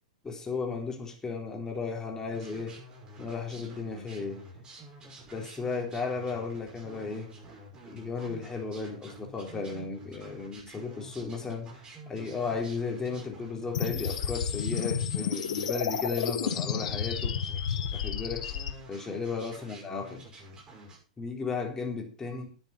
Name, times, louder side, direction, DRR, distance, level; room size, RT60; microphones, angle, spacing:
voice 1, 0.2-2.8 3.2-4.4 5.3-7.3 7.8-11.7 12.1-17.4 17.9-18.6 18.9-20.2 21.2-22.5, left 4 dB, 15° left, 4.0 m, -35 dB
sound 1, 2.3-21.0, right 1 dB, 25° right, 6.2 m, -49 dB
sound 2, 13.7-18.7, left 8 dB, 70° left, 1.7 m, -31 dB
11.0 x 8.9 x 5.8 m
hypercardioid pair, 105°, 4 cm